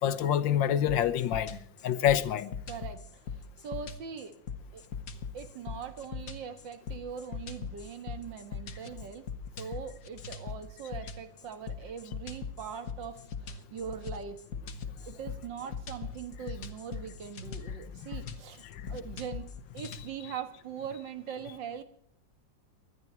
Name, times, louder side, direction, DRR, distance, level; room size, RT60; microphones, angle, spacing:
voice 1, 0.0-2.5 18.7-18.8, left 10 dB, 80° left, 1.6 m, -27 dB
sound 1, 0.9-20.1, left 6 dB, 50° left, 1.6 m, -41 dB
voice 2, 2.7-4.4 4.7-4.8 5.3-9.3 9.6-14.4 15.1-18.6 18.9-21.8, right 7 dB, 70° right, 2.2 m, -41 dB
20.0 x 12.5 x 4.4 m
omnidirectional pair, 2.1 m